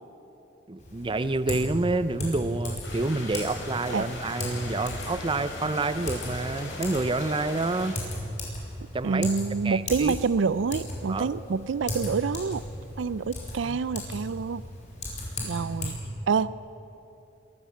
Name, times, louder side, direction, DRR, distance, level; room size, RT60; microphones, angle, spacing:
voice 1, 0.7-8.0 8.9-9.3 9.6-10.1 11.1-11.3 13.7-13.8, right 2 dB, 25° right, 14 dB, 0.6 m, -28 dB
Typing, 0.8-15.9, left 1 dB, 40° left, 5.1 m, -37 dB
Bird, 2.3-16.3, right 1 dB, 15° left, 5.8 m, -52 dB
sound 1, 2.8-7.9, left 2 dB, 75° left, 4.9 m, -39 dB
voice 2, 9.0-12.6 13.0-14.6 15.4-16.0 16.3-16.6, right 5 dB, 75° right, 18 dB, 0.4 m, -27 dB
21.5 x 15.0 x 8.5 m, 2.9 s
head